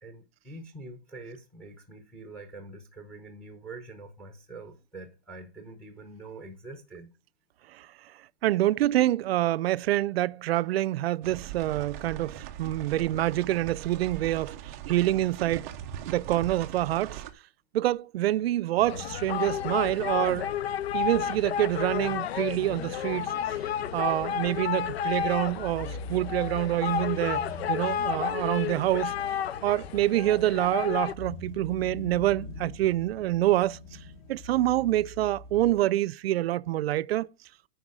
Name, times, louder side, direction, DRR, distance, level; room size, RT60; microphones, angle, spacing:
voice 1, 0.0-7.1, right 2 dB, 5° left, 0.8 m, -45 dB
voice 2, 8.4-15.7 16.1-17.2 17.7-20.5 20.9-23.6 23.9-29.2 29.6-33.8 34.3-37.3, right 14 dB, 75° right, 0.5 m, -26 dB
sound 1, 11.2-17.3, right 11 dB, 15° right, 0.4 m, -40 dB
sound 2, 18.8-35.8, left 2 dB, 35° left, 1.3 m, -44 dB
sound 3, 18.9-31.1, left 9 dB, 80° left, 0.6 m, -31 dB
10.0 x 4.8 x 4.9 m
supercardioid pair, 165°, 31 cm